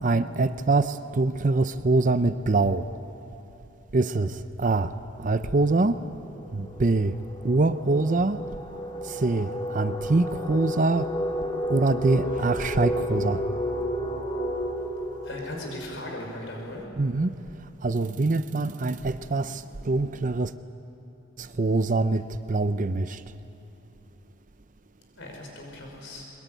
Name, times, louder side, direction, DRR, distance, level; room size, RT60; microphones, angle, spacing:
voice 1, 0.0-2.9 3.9-4.9 5.2-5.9 6.5-7.1 7.4-8.4 9.1-11.1 11.7-13.4 17.0-17.3 17.8-20.5 21.4-23.2, right 3 dB, 35° right, 12 dB, 0.6 m, -24 dB
sound 1, 5.2-16.7, equal, 20° left, 2.4 m, -32 dB
voice 2, 15.2-16.8 25.2-26.3, left 1 dB, 60° left, 0 dB, 5.5 m, -38 dB
22.5 x 21.5 x 9.1 m, 2.9 s
head